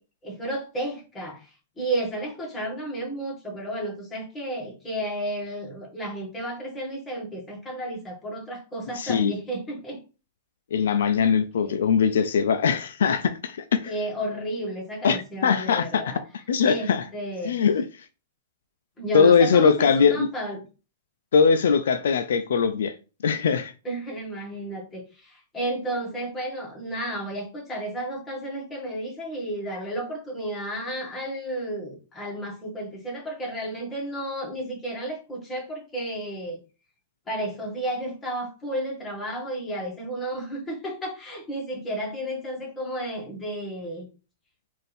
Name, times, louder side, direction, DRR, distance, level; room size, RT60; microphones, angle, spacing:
voice 1, 0.2-10.0 11.6-11.8 13.8-16.2 16.6-17.6 19.0-20.6 23.8-36.6 37.3-44.1, right 1 dB, 15° left, 1.6 m, -32 dB
voice 2, 8.9-9.3 10.7-13.9 15.0-16.1 16.5-17.0 17.4-17.8 19.1-20.3 21.3-22.9 23.2-23.7, left 6 dB, 80° left, 0.4 m, -21 dB
4.2 x 2.6 x 3.4 m
hypercardioid pair, 140°, 0 cm